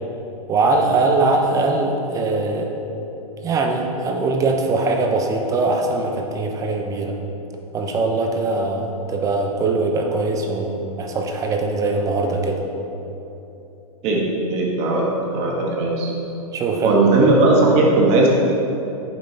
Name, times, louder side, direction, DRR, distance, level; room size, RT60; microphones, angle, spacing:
voice 1, 0.5-2.7 3.4-7.1 7.7-12.6 16.5-17.0, right 3 dB, 15° right, 2 dB, 0.8 m, -21 dB
voice 2, 14.5-15.0 15.3-16.1 16.8-18.3, right 2 dB, 35° right, -2 dB, 1.7 m, -17 dB
9.3 x 7.3 x 3.4 m, 3.0 s
hypercardioid pair, 140°, 19 cm